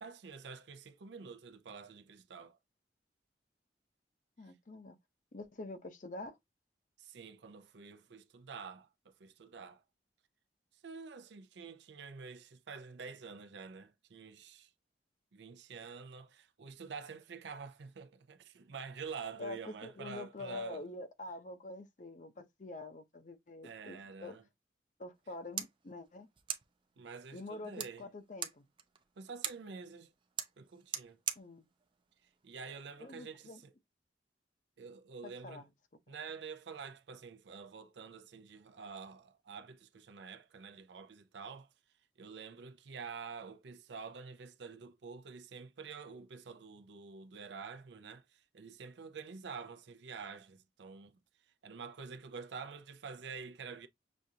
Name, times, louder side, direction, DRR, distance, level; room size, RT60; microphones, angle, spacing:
voice 1, 0.0-2.6 4.4-4.5 7.0-9.8 10.7-14.7 15.3-20.9 23.6-24.4 27.0-28.1 29.2-30.1 30.6-31.2 32.2-33.7 34.8-35.7 36.1-41.7 42.2-51.2 51.5-53.9, right 5 dB, 80° right, 0.5 m, -48 dB
voice 2, 4.4-5.0 5.3-6.4 19.4-24.4 25.0-26.3 27.3-28.7 31.4-31.7 33.0-33.6 35.2-35.7, left 2 dB, 45° left, 0.6 m, -46 dB
sound 1, 25.1-33.2, right 8 dB, 30° right, 0.5 m, -45 dB
6.2 x 2.5 x 2.7 m
head